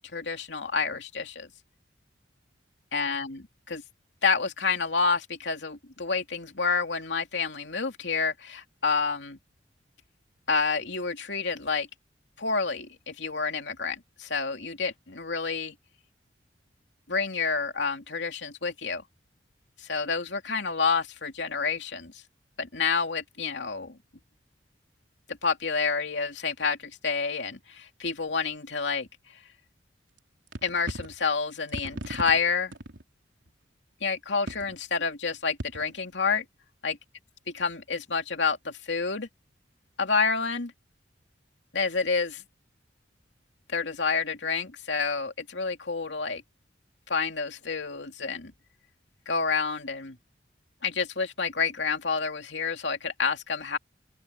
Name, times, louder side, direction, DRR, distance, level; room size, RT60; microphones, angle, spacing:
voice 1, 0.1-1.5 2.9-3.4 3.7-3.8 4.2-9.4 10.5-11.9 12.4-15.7 17.1-19.0 19.8-22.2 22.6-24.0 25.4-29.1 30.6-32.7 34.0-36.4 36.8-36.9 37.5-39.3 40.0-40.7 41.7-42.4 43.7-46.4 47.1-48.5 49.3-50.2 50.8-53.8, left 5 dB, 70° left, 2.8 m, -29 dB
sound 1, 30.2-30.3 30.5-31.2 31.7-33.0 33.5-33.6 34.5-34.8 35.6-36.0, right 1 dB, 85° right, 3.6 m, -37 dB
open air
head